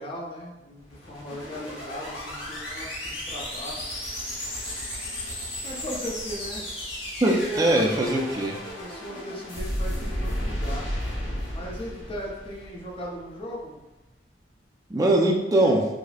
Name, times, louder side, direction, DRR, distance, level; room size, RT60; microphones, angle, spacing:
voice 1, 0.0-2.9 3.2-3.9 5.3-6.8 7.2-7.9 8.8-10.9 11.5-13.8, equal, 30° left, -4 dB, 0.6 m, -37 dB
sound 1, 0.8-13.2, equal, 85° left, 1.3 m, -34 dB
voice 2, 7.2-8.6 14.9-15.9, right 1 dB, 20° right, -1 dB, 0.4 m, -21 dB
4.9 x 2.0 x 2.3 m, 1.0 s
head